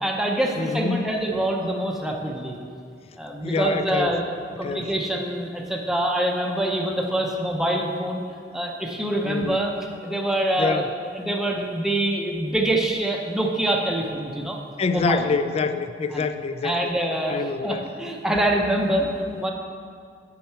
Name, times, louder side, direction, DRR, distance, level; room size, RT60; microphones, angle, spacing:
voice 1, 0.0-2.6 3.2-4.2 4.6-8.2 8.5-9.7 10.0-10.8 11.1-14.6 14.9-15.3 16.1-16.2 16.6-19.5, right 1 dB, 5° right, 0 dB, 0.6 m, -25 dB
voice 2, 0.6-1.1 3.4-4.1 4.6-4.9 9.2-9.6 10.6-10.9 14.8-16.8 17.3-17.9, left 4 dB, 35° left, 11 dB, 0.3 m, -26 dB
8.6 x 5.6 x 4.5 m, 2.2 s
head